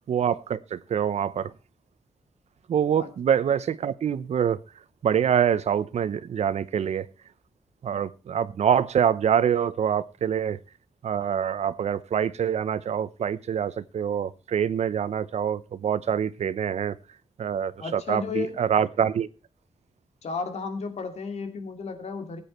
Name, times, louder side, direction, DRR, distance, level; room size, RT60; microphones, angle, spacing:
voice 1, 0.1-1.5 2.7-4.6 5.0-7.1 7.8-10.6 11.0-17.0 17.4-19.3, right 8 dB, 85° right, 16 dB, 0.9 m, -25 dB
voice 2, 17.8-18.5 20.2-22.4, left 5 dB, 80° left, 6 dB, 2.6 m, -33 dB
19.5 x 8.7 x 4.5 m, 0.33 s
wide cardioid pair, 165°, 11 cm